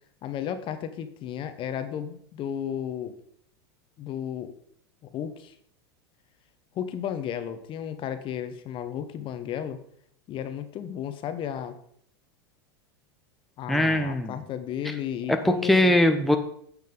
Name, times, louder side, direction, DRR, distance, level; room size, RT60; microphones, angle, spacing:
voice 1, 0.2-3.1 4.0-4.5 5.0-5.5 6.7-9.8 10.3-11.8 13.6-15.9, left 9 dB, 40° left, 10 dB, 0.9 m, -33 dB
voice 2, 13.7-14.4 15.3-16.4, left 1 dB, ahead, 5 dB, 0.8 m, -21 dB
9.3 x 7.4 x 3.8 m, 0.66 s
hypercardioid pair, 95°, 13 cm